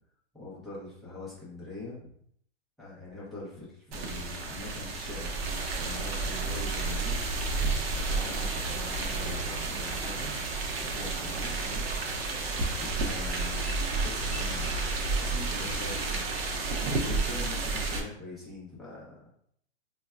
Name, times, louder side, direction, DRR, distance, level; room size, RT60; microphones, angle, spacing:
voice 1, 0.3-2.1 2.8-7.3 8.0-10.3 10.8-11.8 12.8-14.8 15.2-16.3 16.9-19.1, left 2 dB, ahead, -7 dB, 0.5 m, -43 dB
sound 1, 3.9-18.0, right 3 dB, 55° right, 0.7 m, -31 dB
3.9 x 2.2 x 2.2 m, 0.67 s
hypercardioid pair, 150°, 35 cm